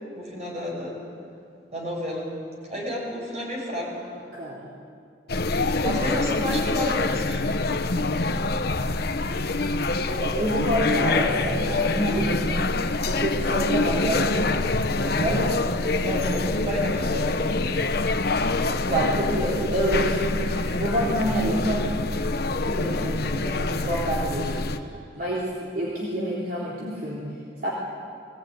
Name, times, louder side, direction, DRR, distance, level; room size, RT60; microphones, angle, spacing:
voice 1, 0.2-1.0 1.7-2.3 2.6-4.0 5.8-7.5 15.9-17.8, equal, 40° right, -2 dB, 7.0 m, -31 dB
voice 2, 4.3-4.7 6.1-6.2 10.1-12.6 13.1-14.5 15.0-15.5 18.5-21.9 22.5-27.3 27.6-27.7, right 1 dB, 55° right, -6 dB, 3.6 m, -28 dB
sound 1, 5.3-24.8, left 3 dB, 60° left, 1.0 m, -25 dB
22.0 x 18.0 x 9.5 m, 2.5 s
head